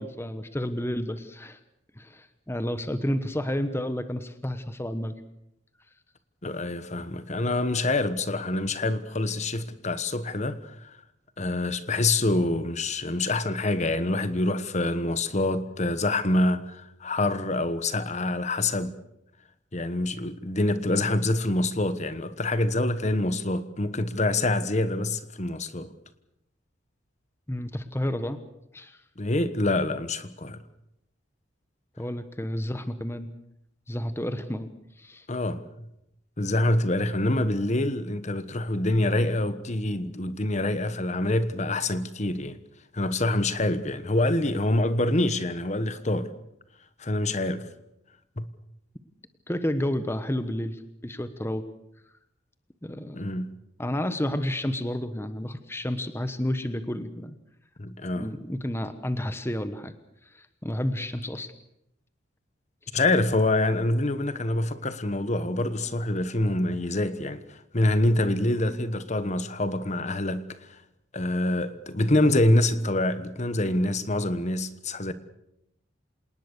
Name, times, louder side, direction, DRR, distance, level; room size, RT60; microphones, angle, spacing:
voice 1, 0.0-1.6 2.0-5.1 27.5-28.4 28.7-29.0 32.0-33.3 33.9-34.7 35.0-35.2 49.5-51.6 52.8-53.2 53.8-57.4 58.1-59.9 60.3-61.5, left 1 dB, 15° left, 1.1 m, -31 dB
voice 2, 6.4-11.0 11.4-18.9 19.7-25.9 29.2-30.6 35.3-35.6 36.4-42.6 42.9-46.3 47.0-47.7 48.4-48.5 53.1-53.5 57.8-58.3 62.9-70.8 71.1-75.1, left 2 dB, 35° left, 1.3 m, -26 dB
27.0 x 19.0 x 6.8 m
head